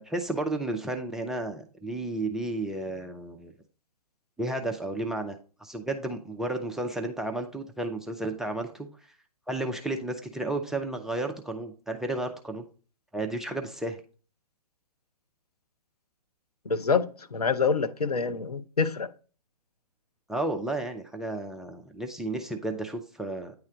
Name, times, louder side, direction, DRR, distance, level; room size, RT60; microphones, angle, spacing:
voice 1, 0.0-3.5 4.4-8.9 9.5-12.6 13.1-14.0 20.3-23.5, right 2 dB, ahead, 0.4 m, -32 dB
voice 2, 16.7-19.1, left 5 dB, 75° left, 0.7 m, -26 dB
9.5 x 3.2 x 4.9 m
figure-of-eight pair, 125°, 20 cm